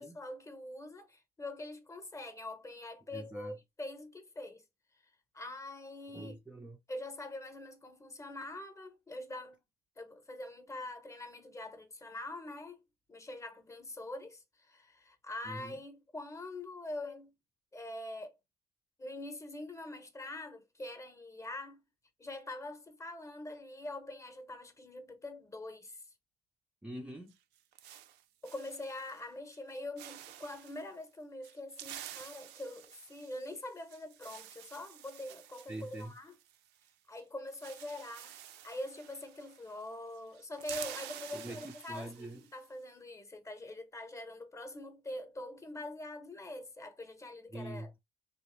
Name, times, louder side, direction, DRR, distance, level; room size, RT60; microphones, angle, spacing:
voice 1, 0.0-4.6 5.3-6.4 6.9-9.6 10.0-12.8 13.1-17.3 17.7-18.4 19.0-21.8 22.2-26.1 28.4-36.4 37.1-47.9, left 1 dB, 20° left, 0.8 m, -44 dB
voice 2, 3.1-3.5 6.1-6.8 15.5-15.8 26.8-27.4 35.7-36.1 41.3-42.4 47.5-48.0, right 1 dB, 5° right, 0.4 m, -44 dB
sound 1, 27.3-29.2 29.5-29.7 30.0-30.8 31.4-36.9 37.2-37.3 37.5-39.9 40.1-42.6, right 11 dB, 80° right, 0.5 m, -50 dB
3.4 x 2.4 x 3.0 m
cardioid pair, 110°, 17 cm